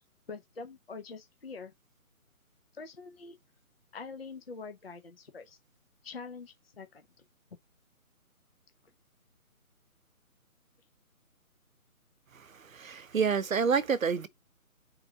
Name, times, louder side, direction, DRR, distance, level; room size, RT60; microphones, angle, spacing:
voice 1, 0.3-1.7 2.7-3.4 3.9-5.6 6.0-7.2, left 4 dB, 40° left, 0.7 m, -45 dB
voice 2, 12.3-14.3, right 6 dB, 65° right, 0.9 m, -29 dB
4.7 x 3.8 x 5.6 m
hypercardioid pair, 170°, 44 cm